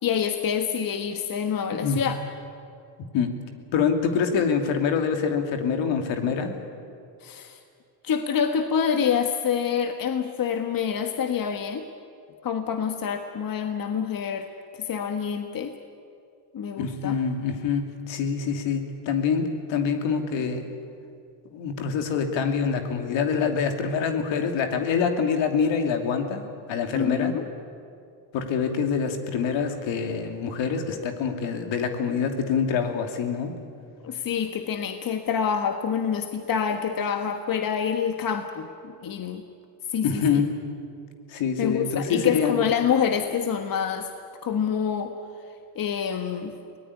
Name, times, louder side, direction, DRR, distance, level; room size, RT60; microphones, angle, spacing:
voice 1, 0.0-2.2 7.2-7.6 8.0-11.9 12.4-14.5 14.7-15.7 16.5-17.2 26.9-27.5 34.0-39.4 39.9-40.4 41.6-44.1 44.4-45.1 45.7-46.5, left 7 dB, 45° left, 7 dB, 1.4 m, -27 dB
voice 2, 3.7-6.7 16.8-20.7 21.5-26.4 26.7-27.3 28.3-33.5 40.0-40.5 41.3-42.7, left 6 dB, 70° left, 5 dB, 2.9 m, -25 dB
23.0 x 18.5 x 10.0 m, 2.4 s
supercardioid pair, 85°, 46 cm